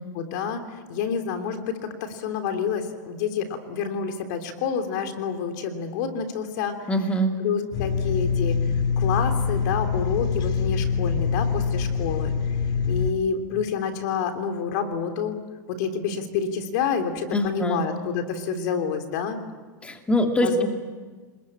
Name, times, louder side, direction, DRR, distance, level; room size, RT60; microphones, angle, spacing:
voice 1, 0.1-6.8 7.4-8.6 9.0-12.3 12.9-15.4 15.7-19.4 20.4-20.7, left 6 dB, 65° left, 6 dB, 3.3 m, -28 dB
voice 2, 6.9-7.4 17.3-17.8 19.8-20.7, equal, 10° left, 4 dB, 2.5 m, -23 dB
sound 1, 7.7-13.1, left 5 dB, 45° left, 3.0 m, -24 dB
26.5 x 21.5 x 8.8 m, 1.4 s
hypercardioid pair, 115°, 10 cm